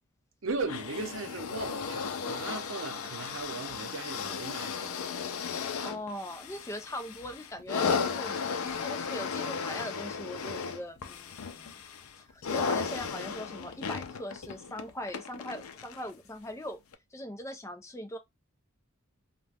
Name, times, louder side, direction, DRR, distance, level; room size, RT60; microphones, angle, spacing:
voice 1, 0.4-5.0, right 3 dB, 70° right, 0.7 m, -37 dB
sound 1, 0.6-16.1 16.9-17.0, left 5 dB, 90° left, 0.4 m, -35 dB
voice 2, 5.8-11.8 12.2-16.8 17.1-18.2, left 1 dB, 15° left, 0.4 m, -41 dB
2.4 x 2.2 x 3.3 m
head